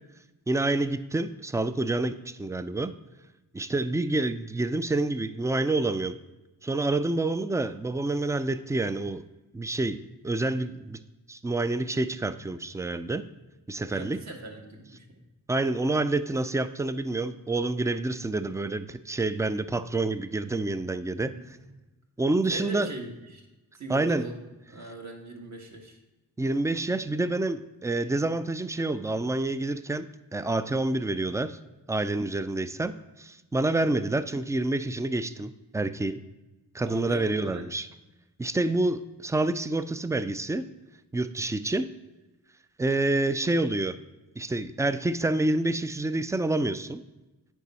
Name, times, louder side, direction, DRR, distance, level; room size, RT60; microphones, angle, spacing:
voice 1, 0.5-2.9 3.5-6.1 6.6-9.2 9.5-11.0 11.3-13.2 13.7-14.2 15.5-21.3 22.2-22.9 23.9-24.2 26.4-30.1 30.3-31.6 31.9-36.2 36.7-37.9 38.4-40.6 41.1-41.9 42.8-44.0 44.4-47.0, right 2 dB, 10° right, 13 dB, 0.3 m, -28 dB
voice 2, 13.9-15.0 21.3-21.4 22.5-23.4 23.7-24.4 24.7-26.0 36.8-37.7, right 2 dB, 50° right, 1 dB, 1.6 m, -40 dB
9.1 x 4.6 x 4.2 m, 1.1 s
cardioid pair, 65°, 36 cm